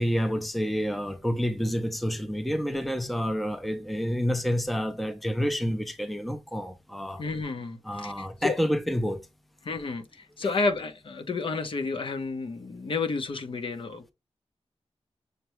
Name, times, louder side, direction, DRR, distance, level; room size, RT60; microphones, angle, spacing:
voice 1, 0.0-7.2 7.8-9.3, equal, ahead, 0.5 m, -28 dB
voice 2, 7.2-8.6 9.6-14.1, left 3 dB, 55° left, 0.8 m, -31 dB
6.6 x 2.2 x 3.0 m
wide cardioid pair, 155°, 11 cm